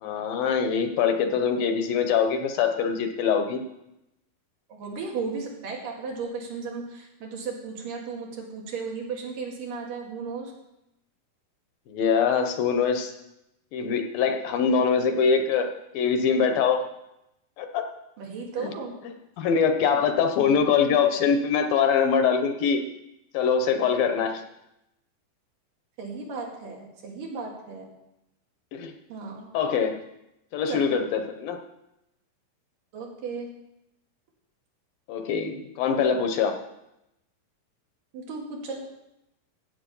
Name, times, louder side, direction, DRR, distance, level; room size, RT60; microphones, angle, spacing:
voice 1, 0.0-3.6 11.9-13.1 13.7-15.7 15.9-16.8 17.6-17.9 18.6-18.7 19.4-22.8 23.3-24.4 28.7-28.9 29.5-30.0 30.5-31.6 35.1-36.6, left 6 dB, 75° left, 6 dB, 2.7 m, -23 dB
voice 2, 4.7-10.5 14.6-14.9 18.2-19.0 20.5-21.0 26.0-27.9 29.1-29.5 30.7-30.8 32.9-33.5 38.1-38.9, right 4 dB, 65° right, 0 dB, 3.8 m, -35 dB
15.5 x 8.4 x 5.5 m, 0.85 s
omnidirectional pair, 4.3 m